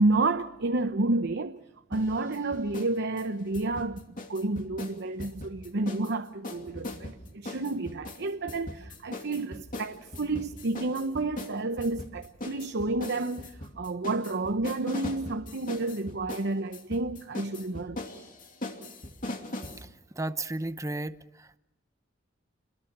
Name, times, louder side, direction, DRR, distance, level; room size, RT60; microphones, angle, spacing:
voice 1, 0.0-1.6 1.9-18.0, right 2 dB, 60° right, 0.9 m, -30 dB
sound 1, 1.9-2.9 3.2-6.1 6.4-19.8, left 1 dB, 45° left, 2.7 m, -40 dB
voice 2, 19.6-21.6, right 2 dB, 15° right, 0.8 m, -35 dB
28.0 x 21.5 x 6.0 m
head